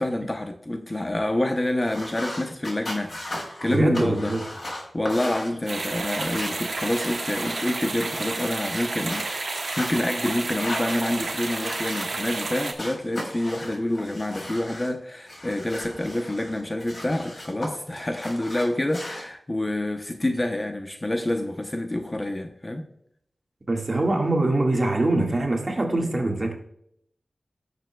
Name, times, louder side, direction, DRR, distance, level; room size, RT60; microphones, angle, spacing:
voice 1, 0.0-3.2 3.6-4.3 4.9-22.8, left 1 dB, 25° left, 0.8 m, -27 dB
sound 1, 1.8-7.7 8.0-9.9 10.4-12.5 12.8-14.9 15.3-17.7 18.0-19.2, left 1 dB, 50° left, 4.1 m, -37 dB
voice 2, 3.6-4.4 23.7-26.5, right 2 dB, 40° right, 1.7 m, -23 dB
sound 2, 5.7-12.7, right 3 dB, 75° right, 1.3 m, -31 dB
18.0 x 6.7 x 2.3 m
wide cardioid pair, 100°, 0 cm